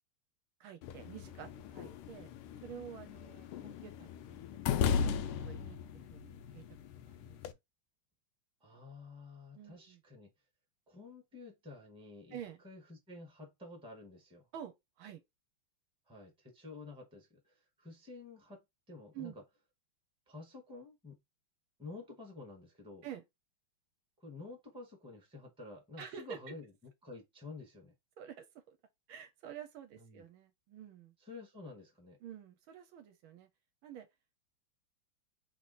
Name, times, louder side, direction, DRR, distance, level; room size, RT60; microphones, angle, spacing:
voice 1, 0.6-2.3 2.6-4.4 4.9-6.6 7.0-7.4 9.5-10.0 12.3-12.6 14.5-15.2 19.1-19.4 23.0-23.2 26.0-26.6 28.2-28.8 29.1-31.1 32.2-33.5 33.8-34.1, right 9 dB, 75° right, 1.4 m, -49 dB
sound 1, 0.8-7.5, left 7 dB, 80° left, 1.4 m, -37 dB
voice 2, 8.6-10.3 10.9-12.4 12.6-14.5 16.1-19.4 20.3-21.2 21.8-23.1 24.2-27.9 30.0-30.2 31.2-32.2, left 3 dB, 5° right, 1.0 m, -50 dB
3.6 x 2.9 x 4.1 m
omnidirectional pair, 2.4 m